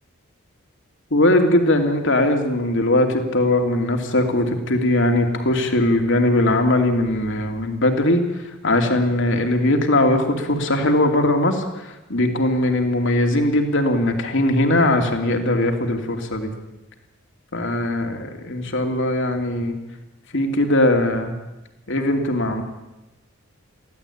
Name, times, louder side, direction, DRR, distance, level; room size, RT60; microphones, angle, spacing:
voice 1, 1.1-8.2 8.6-16.5 17.5-19.8 20.3-21.3 21.9-22.6, left 1 dB, 60° left, 4 dB, 2.8 m, -20 dB
23.0 x 16.0 x 8.6 m, 1.0 s
head